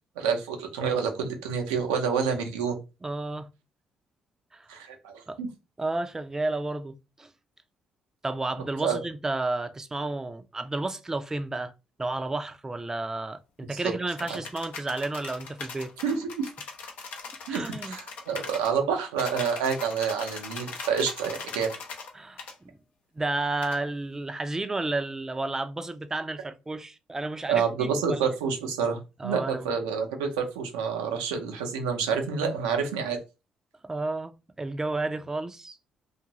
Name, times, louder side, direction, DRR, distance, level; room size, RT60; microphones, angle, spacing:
voice 1, 0.2-2.8 4.7-5.5 8.8-9.0 13.7-13.8 14.3-14.4 16.0-16.5 17.5-21.7 27.5-33.2, right 6 dB, 85° right, 0.6 m, -28 dB
voice 2, 3.0-3.5 4.5-4.7 5.3-5.4 5.8-7.3 8.2-11.7 12.0-15.9 17.5-18.0 22.1-22.4 23.2-28.2 29.2-29.7 33.8-35.8, right 2 dB, 20° right, 0.4 m, -32 dB
sound 1, 14.2-18.7 19.2-22.1 22.4-22.5 23.6-23.8, left 4 dB, 70° left, 0.6 m, -40 dB
2.5 x 2.4 x 2.9 m
hypercardioid pair, 50°, 3 cm